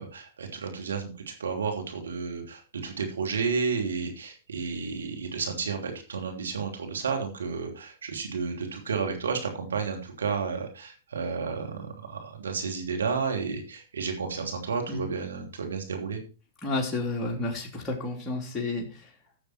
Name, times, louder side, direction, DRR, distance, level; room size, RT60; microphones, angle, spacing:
voice 1, 0.0-16.2, right 5 dB, 85° right, 3 dB, 3.0 m, -32 dB
voice 2, 16.6-19.1, left 2 dB, 15° left, -3 dB, 3.3 m, -31 dB
14.5 x 6.8 x 4.5 m, 0.35 s
hypercardioid pair, 110°, 0 cm